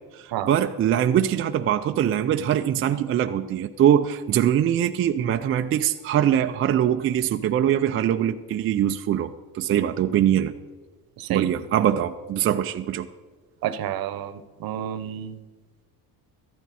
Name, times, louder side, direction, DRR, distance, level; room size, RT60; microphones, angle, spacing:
voice 1, 0.1-10.5 11.3-13.1, right 10 dB, 35° right, 6 dB, 0.4 m, -22 dB
voice 2, 13.6-15.4, right 10 dB, 55° right, 12 dB, 0.9 m, -30 dB
14.0 x 12.0 x 4.2 m, 1.4 s
cardioid pair, 135°, 43 cm